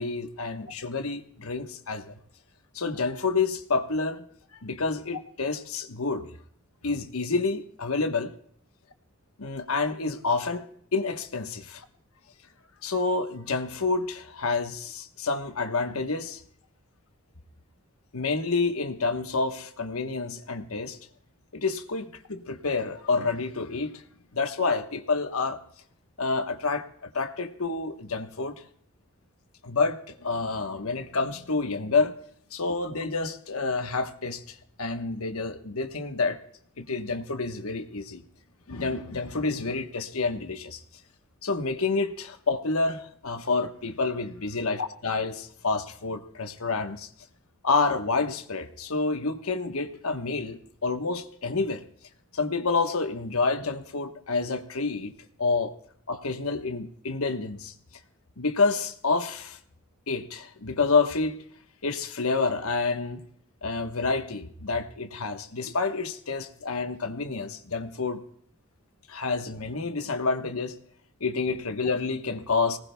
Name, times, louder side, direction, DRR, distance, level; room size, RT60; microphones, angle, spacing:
voice 1, 0.0-2.1 2.7-4.2 4.6-6.3 6.8-8.3 9.4-10.6 10.9-11.8 12.8-16.4 18.1-21.0 21.5-24.0 24.3-25.6 26.2-28.6 29.6-32.1 32.5-36.4 36.8-38.2 38.7-40.8 41.4-47.1 47.6-51.8 52.3-55.1 55.4-55.7 56.1-57.7 58.4-59.6 60.1-61.4 61.8-63.2 63.6-68.2 69.1-70.7 71.2-72.8, left 4 dB, 75° left, 7 dB, 1.2 m, -28 dB
24.5 x 19.0 x 2.3 m, 0.63 s
head